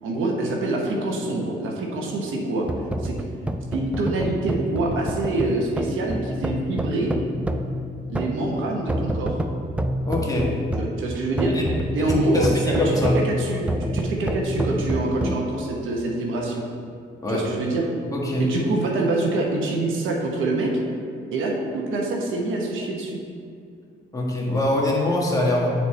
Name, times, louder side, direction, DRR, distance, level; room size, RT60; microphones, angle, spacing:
voice 1, 0.0-2.7 3.0-3.2 3.7-7.1 8.1-9.4 10.8-11.6 11.9-16.6 17.3-17.8 18.4-20.8 21.3-23.2, right 2 dB, 85° right, 0 dB, 1.0 m, -25 dB
sound 1, 2.6-15.4, equal, 5° right, 0.3 m, -28 dB
voice 2, 10.0-10.5 11.5-11.6 12.0-13.1 17.2-17.5 18.1-18.5 24.1-25.7, left 2 dB, 15° left, -3 dB, 1.4 m, -24 dB
9.4 x 4.1 x 3.2 m, 2.3 s
cardioid pair, 90°, 20 cm